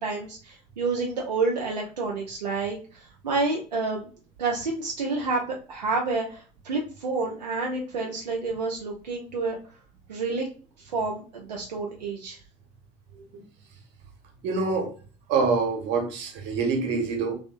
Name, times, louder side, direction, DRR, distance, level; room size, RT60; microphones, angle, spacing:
voice 1, 0.0-4.1 4.4-9.6 10.1-10.5 10.8-12.4, right 3 dB, 90° right, -1 dB, 0.4 m, -29 dB
voice 2, 14.4-14.9 15.3-17.4, right 4 dB, 60° right, 3 dB, 0.9 m, -26 dB
2.5 x 2.4 x 2.4 m, 0.38 s
hypercardioid pair, 60°, 21 cm